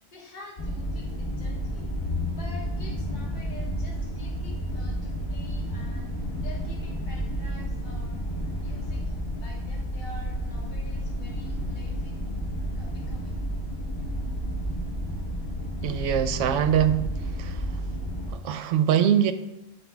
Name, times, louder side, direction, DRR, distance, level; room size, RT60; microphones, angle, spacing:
voice 1, 0.1-1.9 2.3-8.3 8.6-12.2 12.7-13.4, left 1 dB, 40° left, -3 dB, 1.6 m, -48 dB
sound 1, 0.6-18.3, equal, 55° left, 1.5 m, -31 dB
voice 2, 15.8-17.0 17.4-17.6 18.3-19.3, right 9 dB, 80° right, 11 dB, 0.9 m, -23 dB
12.5 x 5.3 x 2.4 m, 0.95 s
omnidirectional pair, 1.3 m